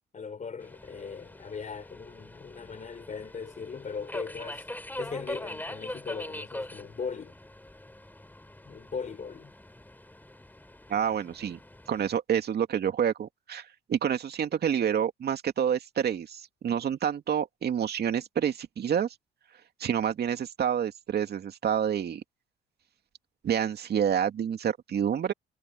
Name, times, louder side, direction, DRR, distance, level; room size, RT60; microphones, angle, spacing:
voice 1, 0.1-4.6 5.0-7.3 8.7-9.5, left 5 dB, 40° left, 3.8 m, -39 dB
Subway metro underground, 0.6-12.1, left 1 dB, 10° left, 3.2 m, -43 dB
voice 2, 10.9-11.6 11.9-19.1 19.8-22.2 23.4-25.3, right 8 dB, 60° right, 2.5 m, -28 dB
supercardioid pair, 70°, 19 cm